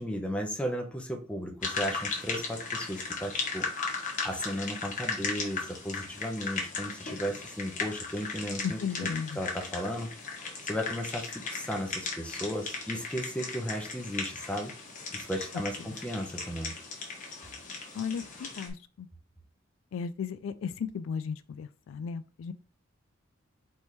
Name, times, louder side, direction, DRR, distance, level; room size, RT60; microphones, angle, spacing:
voice 1, 0.0-3.8 4.2-10.1 10.6-14.7 15.1-16.7, equal, 5° left, 0.8 m, -35 dB
sound 1, 1.6-18.7, left 4 dB, 40° left, 1.2 m, -37 dB
voice 2, 8.6-9.4 18.0-19.1 19.9-22.5, left 6 dB, 75° left, 0.3 m, -35 dB
4.1 x 3.5 x 3.1 m
head